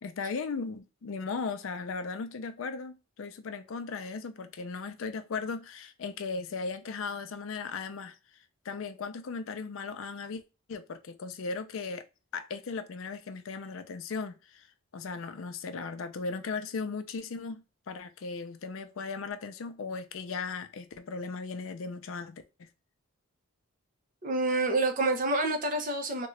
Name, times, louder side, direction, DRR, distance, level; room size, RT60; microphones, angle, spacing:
voice 1, 0.0-8.2 8.6-10.4 10.7-12.0 12.3-14.7 14.9-17.6 17.9-22.7, left 4 dB, 65° left, 0.4 m, -37 dB
voice 2, 24.2-26.3, right 2 dB, 40° right, 0.6 m, -28 dB
3.6 x 2.2 x 3.1 m
head